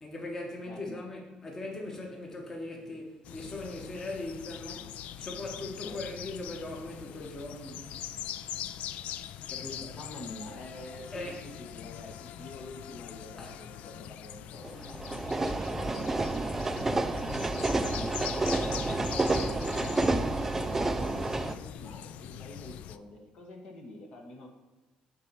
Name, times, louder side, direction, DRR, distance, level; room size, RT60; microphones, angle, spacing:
voice 1, 0.0-7.9 9.5-10.0 11.1-11.4 13.4-13.6 14.8-14.9 18.2-18.4, left 2 dB, 20° left, 1.3 m, -40 dB
voice 2, 0.6-1.0 5.8-6.0 9.9-14.8 15.2-15.3 15.6-16.4 17.6-19.9 20.3-24.5, left 2 dB, 45° left, 1.2 m, -47 dB
sound 1, 3.2-23.0, left 11 dB, 70° left, 0.3 m, -42 dB
sound 2, 14.6-21.5, right 2 dB, 15° right, 0.4 m, -29 dB
7.4 x 4.3 x 6.7 m
cardioid pair, 155°, 2 cm